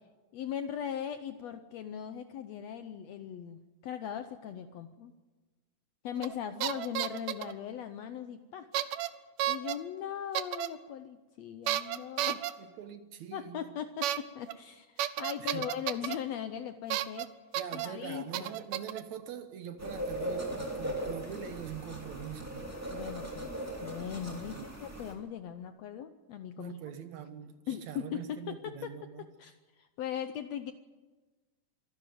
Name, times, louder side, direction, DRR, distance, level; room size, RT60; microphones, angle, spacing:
voice 1, 0.3-5.1 6.0-8.7 9.5-12.4 13.3-17.3 17.7-18.6 22.9-26.8 27.7-28.9 29.2-30.7, left 9 dB, 75° left, 1.6 m, -39 dB
sound 1, 6.2-6.4 6.6-7.5 8.7-9.1 9.4-9.8 10.4-10.7 11.7-12.5 14.0-14.2 14.5-14.6 15.0-16.2 16.9-17.3 17.5-17.9 18.3-19.0, right 13 dB, 80° right, 2.3 m, -32 dB
voice 2, 12.6-13.7 15.4-15.7 17.6-22.8 24.5-24.7 26.6-27.6 27.9-29.3, right 9 dB, 65° right, 2.2 m, -43 dB
sound 2, 19.8-25.1, right 1 dB, 5° right, 2.3 m, -39 dB
25.5 x 12.0 x 9.3 m
omnidirectional pair, 3.8 m